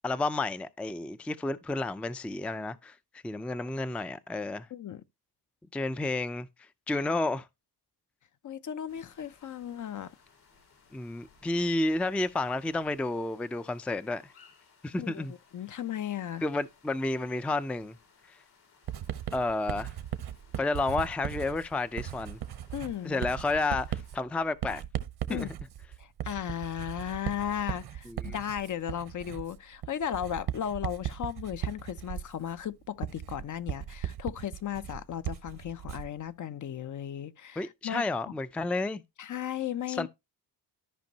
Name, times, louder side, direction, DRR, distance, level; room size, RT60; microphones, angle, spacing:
voice 1, 0.0-4.7 5.7-7.5 10.9-14.2 14.8-15.3 16.4-18.0 18.3-18.4 19.3-19.9 20.6-22.4 23.0-24.8 25.3-25.5 28.1-28.3 37.6-39.0 39.9-40.1, left 2 dB, 5° left, 0.4 m, -31 dB
voice 2, 4.7-5.0 8.4-10.1 15.0-15.2 15.5-16.4 22.7-23.2 25.3-25.5 26.0-38.1 39.2-40.1, left 10 dB, 50° left, 0.6 m, -35 dB
sound 1, 8.9-24.2, left 5 dB, 70° left, 3.3 m, -62 dB
Writing, 18.9-36.2, right 10 dB, 70° right, 0.9 m, -38 dB
13.5 x 5.2 x 2.8 m
cardioid pair, 110°, 40 cm